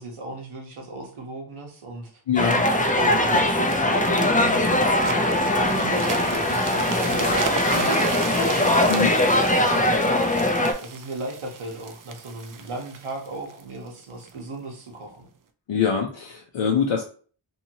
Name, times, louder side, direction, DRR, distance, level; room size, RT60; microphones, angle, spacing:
voice 1, 0.0-2.2 2.9-10.0 10.8-15.3, right 2 dB, 90° right, 1 dB, 1.0 m, -35 dB
voice 2, 2.3-2.6 8.9-9.1 15.7-17.0, left 7 dB, 80° left, 0 dB, 0.6 m, -23 dB
sound 1, 2.4-10.7, left 1 dB, 20° left, 0.4 m, -21 dB
sound 2, 2.5-14.4 15.0-15.2, right 5 dB, 45° right, 0.4 m, -36 dB
sound 3, 7.2-8.2, left 3 dB, 60° left, 0.9 m, -40 dB
2.8 x 2.7 x 2.7 m, 0.41 s
wide cardioid pair, 70°, 50 cm